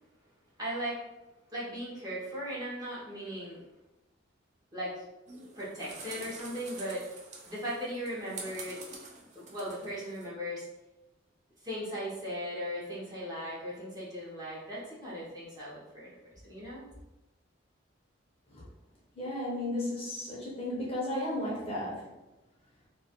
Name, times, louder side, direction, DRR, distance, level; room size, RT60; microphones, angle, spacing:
voice 1, 0.6-1.0 1.5-3.6 4.7-5.0 5.5-7.1 7.5-8.8 9.3-10.7 11.6-16.8, equal, 20° right, -8 dB, 0.7 m, -38 dB
sound 1, 5.3-10.3, right 3 dB, 35° right, 0.3 m, -47 dB
voice 2, 19.2-22.1, left 1 dB, 30° left, -5 dB, 0.6 m, -34 dB
2.3 x 2.3 x 2.8 m, 1.0 s
head